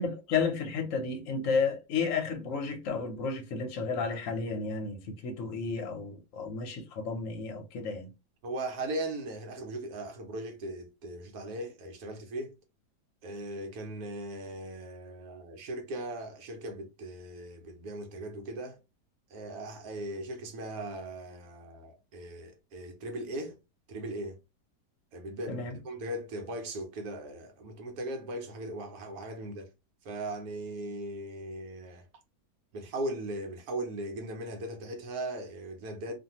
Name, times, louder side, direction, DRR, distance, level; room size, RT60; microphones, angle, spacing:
voice 1, 0.0-8.1 25.5-25.8, left 4 dB, 60° left, 1.0 m, -32 dB
voice 2, 8.4-12.5 13.2-18.8 19.3-23.6 23.9-24.4 25.1-29.7 30.0-32.1 32.7-36.2, right 1 dB, 70° right, 1.2 m, -38 dB
2.6 x 2.5 x 2.8 m
omnidirectional pair, 1.7 m